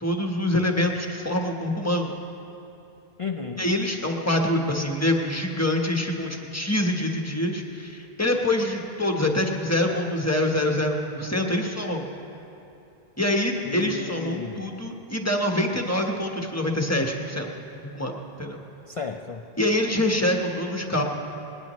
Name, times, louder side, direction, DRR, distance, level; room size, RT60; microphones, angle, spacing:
voice 1, 0.0-2.1 3.6-12.0 13.2-17.5 17.9-18.1 18.4-18.6 19.6-21.0, left 1 dB, 15° left, 1 dB, 1.2 m, -25 dB
voice 2, 3.2-3.7 13.6-14.7 18.9-19.5, left 4 dB, 45° left, 4 dB, 0.5 m, -33 dB
20.5 x 18.5 x 3.1 m, 2.8 s
omnidirectional pair, 1.1 m